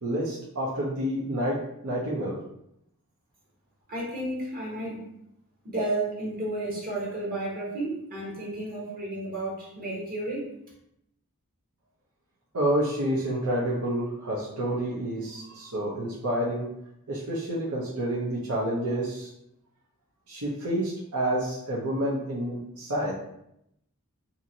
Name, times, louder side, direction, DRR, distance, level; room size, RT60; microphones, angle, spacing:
voice 1, 0.0-2.4 12.5-16.7 17.1-19.3 20.3-23.1, right 1 dB, 85° right, -7 dB, 0.7 m, -29 dB
voice 2, 3.9-5.1 5.6-10.5, right 1 dB, 40° right, -5 dB, 0.9 m, -32 dB
2.8 x 2.6 x 2.7 m, 0.79 s
head